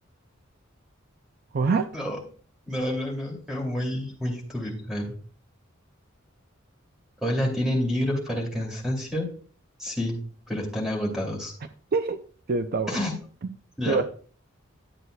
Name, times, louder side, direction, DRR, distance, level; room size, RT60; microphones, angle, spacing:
voice 1, 1.5-1.9 11.9-12.2 12.5-13.1 13.9-14.0, right 4 dB, 50° right, 9 dB, 0.4 m, -24 dB
voice 2, 2.7-5.1 7.2-9.3 9.8-10.2 10.5-11.5 12.9-13.1 13.8-14.0, left 1 dB, 5° right, 0 dB, 2.6 m, -28 dB
11.0 x 7.9 x 2.3 m, 0.42 s
head